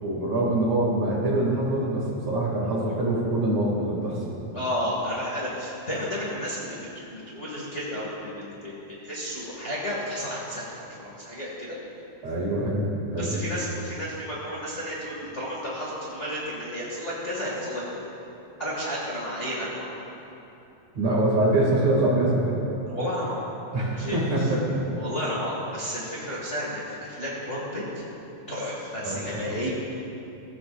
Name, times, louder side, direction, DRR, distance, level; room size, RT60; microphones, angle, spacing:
voice 1, 0.0-4.2 12.2-13.4 20.9-22.6 23.7-24.9 29.1-29.3, right 1 dB, 55° right, -4 dB, 3.7 m, -24 dB
voice 2, 4.5-6.8 7.1-11.8 13.1-18.0 18.6-19.9 22.9-23.4 23.9-24.5 25.0-28.0 28.5-29.7, equal, 25° left, -6 dB, 2.1 m, -32 dB
22.0 x 15.0 x 2.6 m, 2.9 s
omnidirectional pair, 3.8 m